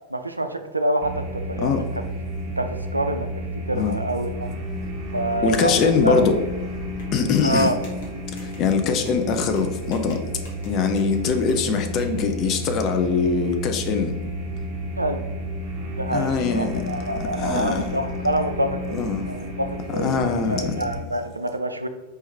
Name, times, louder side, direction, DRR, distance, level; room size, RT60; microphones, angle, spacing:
voice 1, 0.1-2.0 2.6-3.3 3.7-4.5 5.1-6.3 7.4-7.8 15.0-15.2 15.9-21.9, right 1 dB, 85° right, 7 dB, 0.3 m, -26 dB
sound 1, 1.0-21.0, equal, 30° right, 1.2 m, -32 dB
voice 2, 5.4-6.3 7.1-7.7 8.4-10.2 10.7-14.2 16.1-16.8 17.4-18.0 18.9-19.3 19.9-20.8, left 5 dB, 35° left, 6 dB, 0.5 m, -22 dB
sound 2, 7.0-12.2, left 2 dB, 60° left, 1.2 m, -44 dB
4.6 x 3.1 x 3.3 m, 1.1 s
figure-of-eight pair, 90°, 0 cm